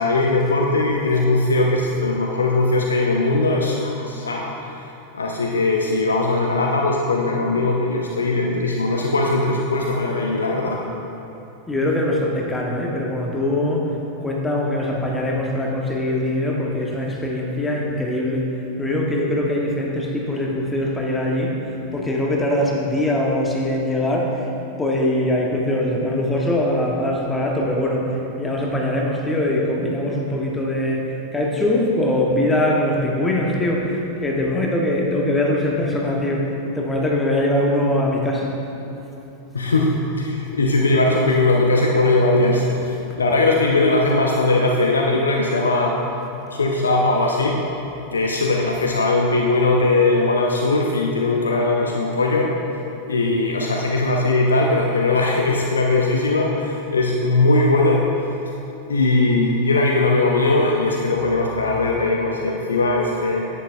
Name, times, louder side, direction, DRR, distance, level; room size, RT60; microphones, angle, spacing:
voice 1, 0.0-4.5 5.1-10.8 39.5-46.0 46.5-47.6 48.1-52.5 53.0-58.0 58.9-63.5, left 2 dB, 70° left, -1 dB, 0.6 m, -19 dB
voice 2, 11.7-13.9 14.2-24.5 24.8-38.5 42.4-42.5, left 1 dB, 10° left, -2 dB, 1.2 m, -22 dB
10.0 x 8.5 x 2.5 m, 3.0 s
figure-of-eight pair, 90°, 0 cm